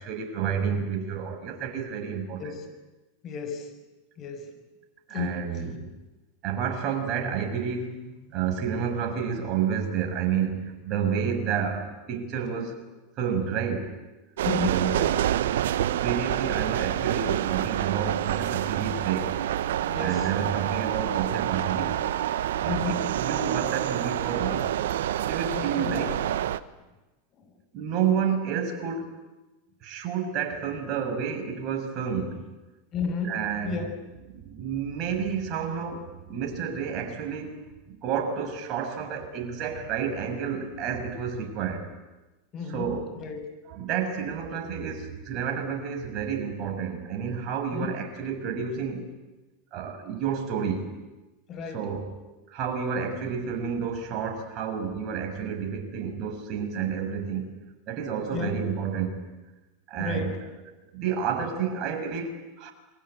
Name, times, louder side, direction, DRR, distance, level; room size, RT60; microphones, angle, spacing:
voice 1, 0.0-2.5 5.1-5.9 6.4-12.8 13.2-13.9 14.6-14.9 16.0-19.4 20.0-22.0 22.6-24.7 25.3-26.1 27.7-29.1 29.8-32.4 33.3-33.8 34.3-41.9 42.7-43.1 43.7-49.1 49.7-50.9 51.7-52.1 52.5-57.4 57.9-59.2 59.9-60.3 60.9-62.7, right 7 dB, 45° right, 6.6 m, -30 dB
voice 2, 3.2-3.7 4.2-4.5 5.1-5.4 14.4-15.2 19.9-20.3 22.7-23.1 25.6-26.0 27.4-27.5 32.9-34.0 42.5-42.9 43.2-43.4 47.7-48.0 51.5-51.9 58.3-58.7 60.0-60.4, left 5 dB, 35° left, 6.3 m, -33 dB
sound 1, 14.4-26.6, right 12 dB, 70° right, 1.0 m, -27 dB
28.0 x 22.5 x 9.0 m
hypercardioid pair, 95°, 0 cm